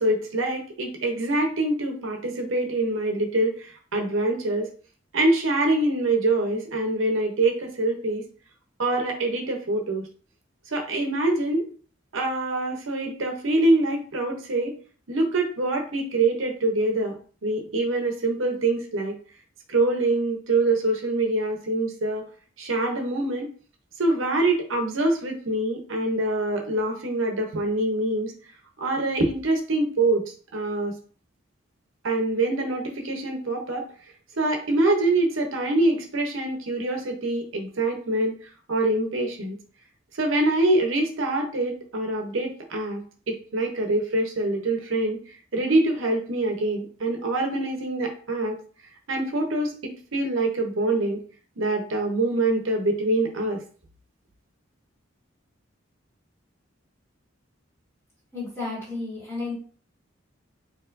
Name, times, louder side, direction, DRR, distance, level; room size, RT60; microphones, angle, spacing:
voice 1, 0.0-4.7 5.1-8.2 8.8-10.0 10.7-11.6 12.1-14.8 15.1-17.2 17.4-19.1 19.7-22.3 22.6-23.5 24.0-28.3 28.8-30.2 30.5-30.9 32.0-33.9 34.4-38.3 38.7-39.6 40.2-45.2 45.5-48.6 49.1-51.2 51.6-53.6, right 2 dB, 80° right, 3 dB, 0.8 m, -25 dB
voice 2, 58.3-59.5, left 3 dB, 15° left, -7 dB, 1.8 m, -32 dB
4.5 x 2.9 x 2.6 m, 0.42 s
head